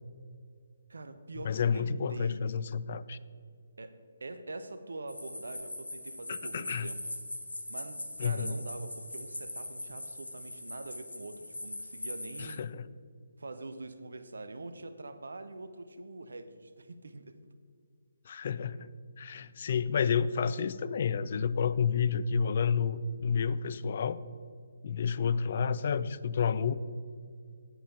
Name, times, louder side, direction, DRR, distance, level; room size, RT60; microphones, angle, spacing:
voice 1, 0.9-2.5 3.8-3.9 4.2-7.1 7.7-12.7 13.4-17.4, right 2 dB, 70° right, 10 dB, 0.7 m, -44 dB
voice 2, 1.4-3.2 6.3-6.9 8.2-8.6 12.4-12.9 18.3-18.9 19.2-24.2 24.8-26.7, left 6 dB, 45° left, 16 dB, 0.3 m, -30 dB
sound 1, 5.1-12.6, left 1 dB, 80° left, 1.4 m, -41 dB
8.6 x 8.0 x 4.6 m, 2.2 s
figure-of-eight pair, 140°, 0 cm